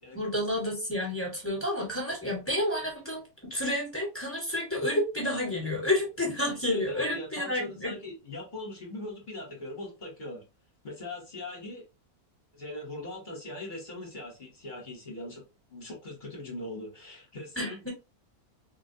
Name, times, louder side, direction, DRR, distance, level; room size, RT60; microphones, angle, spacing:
voice 1, 0.1-7.9 17.6-17.9, left 1 dB, 10° left, 1.2 m, -30 dB
voice 2, 6.7-10.4 10.8-11.8 12.5-15.4 15.7-17.9, left 2 dB, 35° left, 1.0 m, -40 dB
3.7 x 2.2 x 2.6 m
omnidirectional pair, 1.6 m